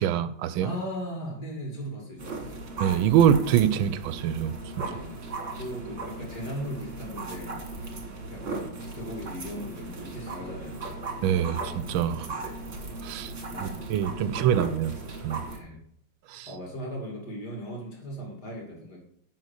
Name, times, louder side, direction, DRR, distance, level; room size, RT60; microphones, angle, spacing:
voice 1, 0.0-0.7 2.8-4.5 11.2-12.3 13.0-13.3 13.6-14.9 15.2-15.4 16.3-16.5, right 9 dB, 85° right, 1.4 m, -24 dB
voice 2, 0.6-2.5 4.8-5.2 5.5-8.0 8.3-11.0 12.1-12.3 13.5-13.9 14.2-14.6 15.5-15.8 16.5-19.0, equal, 55° left, 3.0 m, -38 dB
sound 1, 2.2-15.6, right 3 dB, 40° right, 1.7 m, -37 dB
10.5 x 4.3 x 6.5 m
omnidirectional pair, 2.2 m